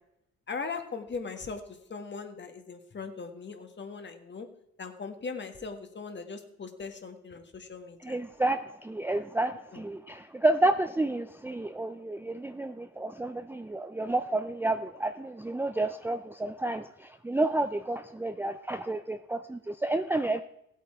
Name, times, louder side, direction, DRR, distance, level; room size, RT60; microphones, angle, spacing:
voice 1, 0.5-4.5 4.8-8.2 9.7-9.8, left 4 dB, 35° left, 6 dB, 1.7 m, -39 dB
voice 2, 8.0-20.4, right 2 dB, 5° right, 8 dB, 0.5 m, -30 dB
16.0 x 8.3 x 4.4 m, 0.80 s
cardioid pair, 90°, 30 cm